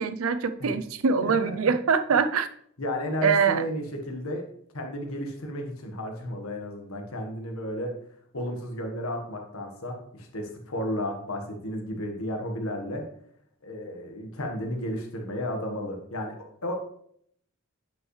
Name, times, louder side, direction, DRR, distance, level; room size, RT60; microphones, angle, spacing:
voice 1, 0.0-2.5 3.2-3.6, right 5 dB, 70° right, 11 dB, 0.5 m, -23 dB
voice 2, 2.8-4.4 4.7-7.9 8.3-13.0 13.6-16.8, left 1 dB, 85° left, 3 dB, 1.5 m, -33 dB
8.9 x 5.5 x 3.2 m, 0.67 s
head